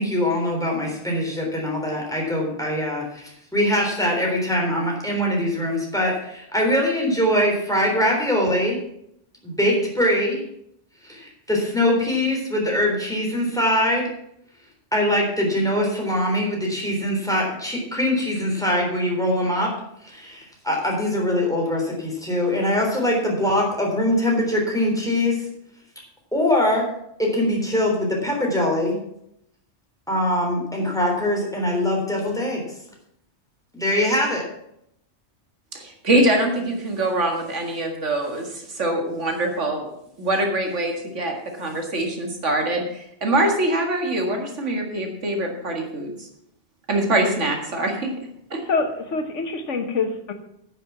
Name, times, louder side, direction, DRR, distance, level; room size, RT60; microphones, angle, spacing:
voice 1, 0.0-8.8 9.4-10.4 11.0-14.1 14.9-19.7 20.0-25.5 26.3-26.9 27.2-29.0 30.1-32.6 33.7-34.4, left 1 dB, 5° left, -1 dB, 3.6 m, -22 dB
voice 2, 35.7-39.9 40.2-46.3 46.9-48.1 48.5-48.6, right 1 dB, 85° right, 3 dB, 2.3 m, -24 dB
voice 3, 48.7-50.3, left 4 dB, 85° left, 6 dB, 1.6 m, -25 dB
10.0 x 7.1 x 7.2 m, 0.75 s
omnidirectional pair, 1.2 m